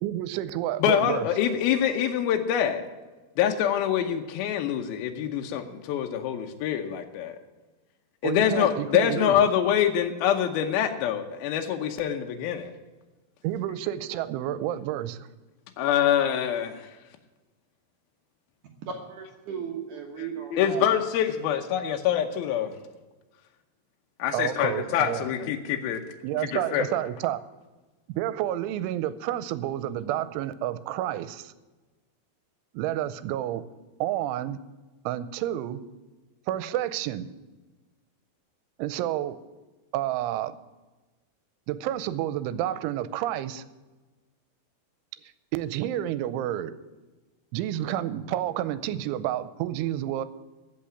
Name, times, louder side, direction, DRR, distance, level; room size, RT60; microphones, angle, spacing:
voice 1, 0.0-1.3 8.2-9.5 13.4-15.2 24.3-25.2 26.2-27.4 28.1-31.5 32.7-33.6 34.0-34.6 35.1-35.8 36.5-37.3 38.8-39.4 39.9-40.5 41.7-43.6 45.5-46.7 47.5-50.3, right 12 dB, 90° right, 14 dB, 3.1 m, -30 dB
voice 2, 0.8-2.8 3.4-7.3 8.2-12.7 15.8-16.9 20.2-22.7 24.2-26.0 26.5-26.9, left 9 dB, 80° left, 4 dB, 2.2 m, -25 dB
voice 3, 18.9-20.9 24.6-25.0, right 6 dB, 65° right, 1 dB, 2.0 m, -36 dB
15.0 x 5.8 x 9.7 m, 1.2 s
omnidirectional pair, 5.4 m